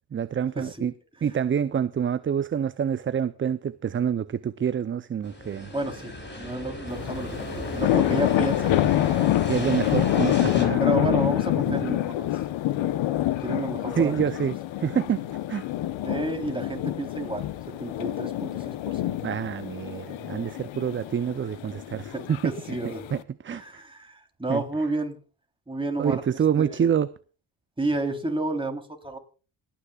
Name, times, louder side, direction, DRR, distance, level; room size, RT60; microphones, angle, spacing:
voice 1, 0.1-0.9 1.2-5.7 9.4-10.8 11.7-12.0 14.0-15.6 19.2-22.8 23.1-23.8 24.5-24.6 26.0-27.1, right 8 dB, 25° right, 0.5 m, -27 dB
sound 1, 5.2-10.7, left 1 dB, 25° left, 4.9 m, -35 dB
voice 2, 5.7-9.1 10.8-12.3 13.4-14.2 16.0-19.2 21.9-23.0 23.5-25.2 25.7-26.9 27.8-29.2, right 2 dB, 10° right, 3.3 m, -31 dB
sound 2, 6.9-23.2, left 14 dB, 80° left, 1.0 m, -27 dB
27.0 x 10.0 x 2.3 m
cardioid pair, 100°, 45 cm